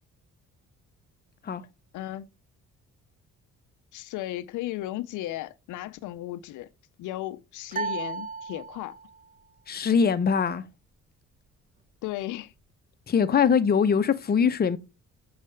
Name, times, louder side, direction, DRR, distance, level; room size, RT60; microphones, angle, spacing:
voice 1, 1.9-2.3 3.9-6.7 7.0-9.0 12.0-12.5, left 15 dB, 80° left, 0.5 m, -35 dB
sound 1, 7.7-9.2, right 5 dB, 30° right, 0.7 m, -34 dB
voice 2, 9.7-10.6 13.1-14.8, left 6 dB, 30° left, 0.6 m, -22 dB
6.5 x 4.7 x 3.2 m
cardioid pair, 90°, 30 cm